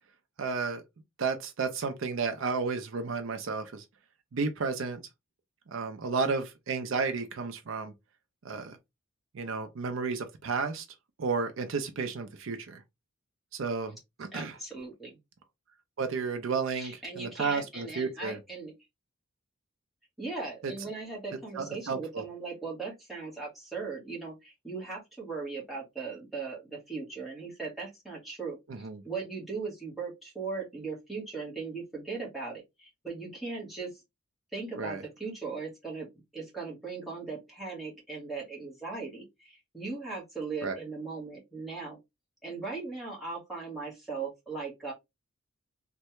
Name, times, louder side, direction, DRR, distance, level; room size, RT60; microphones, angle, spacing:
voice 1, 0.4-0.8 1.2-3.8 4.3-5.0 5.7-7.9 8.4-8.8 9.3-10.9 11.2-12.8 13.5-14.6 16.0-18.4 20.6-20.7 21.6-22.2 28.7-29.0 34.8-35.0 40.6-40.8, right 4 dB, 65° right, 0.5 m, -32 dB
voice 2, 14.3-15.2 16.7-18.7 20.2-34.0 34.5-36.1 36.3-42.0 42.4-44.9, right 4 dB, ahead, 1.2 m, -38 dB
3.2 x 2.2 x 2.9 m
head